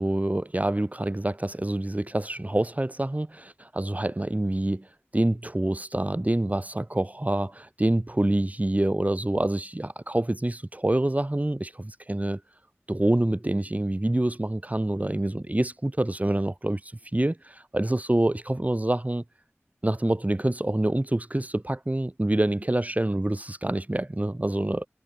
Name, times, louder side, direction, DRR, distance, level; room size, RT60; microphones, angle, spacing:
voice 1, 0.0-4.9 5.1-12.4 12.9-19.2 19.8-24.9, right 1 dB, 35° right, 2.6 m, -26 dB
wide cardioid pair, 45°, 5 cm